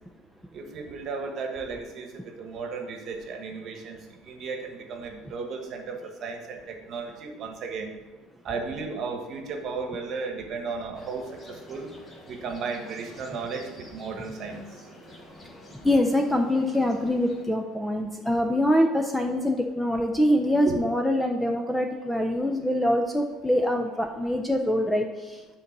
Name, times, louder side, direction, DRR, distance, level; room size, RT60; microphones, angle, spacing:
voice 1, 0.5-7.9 8.4-11.9 12.3-14.6 20.6-20.8, right 4 dB, 45° right, 3 dB, 1.2 m, -35 dB
sound 1, 10.9-17.5, left 1 dB, 20° left, 1.1 m, -48 dB
voice 2, 15.8-25.1, left 1 dB, 5° left, 3 dB, 0.5 m, -24 dB
9.0 x 4.0 x 5.9 m, 1.2 s
cardioid pair, 150°, 0 cm